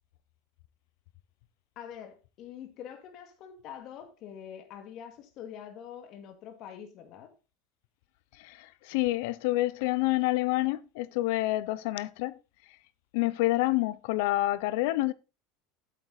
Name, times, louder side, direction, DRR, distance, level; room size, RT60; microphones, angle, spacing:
voice 1, 1.8-7.3, left 9 dB, 50° left, 2.1 m, -45 dB
voice 2, 8.4-12.3 13.1-15.1, left 18 dB, 75° left, 0.7 m, -28 dB
8.5 x 8.0 x 4.1 m
supercardioid pair, 130°, 0 cm